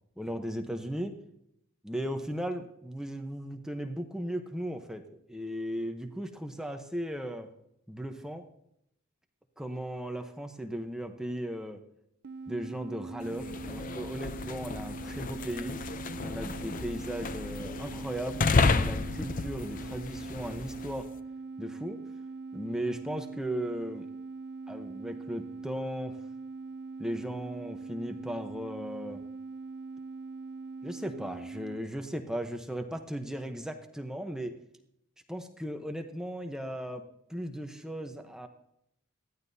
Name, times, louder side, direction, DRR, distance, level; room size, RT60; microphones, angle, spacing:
voice 1, 0.2-1.2 1.8-5.0 5.3-7.5 7.9-8.5 9.6-11.8 12.5-15.8 16.2-18.4 18.7-21.1 21.6-22.0 22.5-24.1 24.7-26.2 27.0-29.2 30.8-34.6 35.3-37.0 37.3-38.5, equal, 5° right, 4 dB, 0.9 m, -36 dB
sound 1, 12.2-31.8, right 4 dB, 55° right, 0.7 m, -42 dB
sound 2, 13.3-21.1, left 4 dB, 40° left, 0.5 m, -32 dB
19.0 x 14.0 x 2.8 m, 0.78 s
head